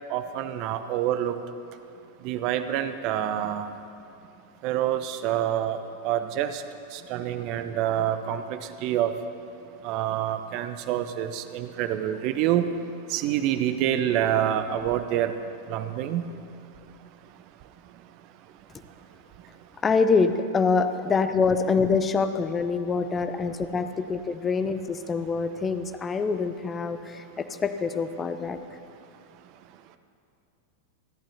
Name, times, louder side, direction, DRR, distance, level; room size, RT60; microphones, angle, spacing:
voice 1, 0.1-1.4 2.2-3.8 4.6-6.6 6.9-9.2 9.8-12.7 13.1-15.4 15.7-16.2, right 11 dB, 40° right, 10 dB, 0.7 m, -27 dB
voice 2, 19.8-28.6, left 4 dB, 20° left, 10 dB, 0.6 m, -25 dB
28.5 x 11.5 x 2.8 m, 2.5 s
figure-of-eight pair, 90°, 0 cm